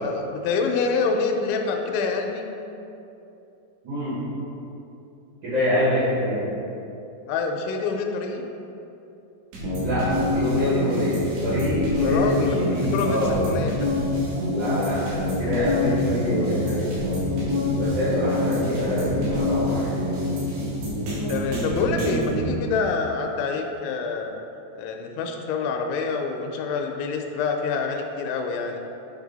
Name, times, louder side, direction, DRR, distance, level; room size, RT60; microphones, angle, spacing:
voice 1, 0.0-2.5 7.3-8.4 12.0-12.6 12.9-13.9 18.1-18.2 21.3-24.3 24.8-28.8, left 4 dB, 85° left, 3 dB, 2.8 m, -26 dB
voice 2, 3.8-4.2 5.4-6.4 9.8-13.4 14.5-17.0 17.8-20.3, equal, 70° right, -10 dB, 1.8 m, -26 dB
sound 1, 9.5-22.4, left 1 dB, 85° right, 4.0 m, -26 dB
9.2 x 3.3 x 3.9 m, 2.8 s
omnidirectional pair, 5.3 m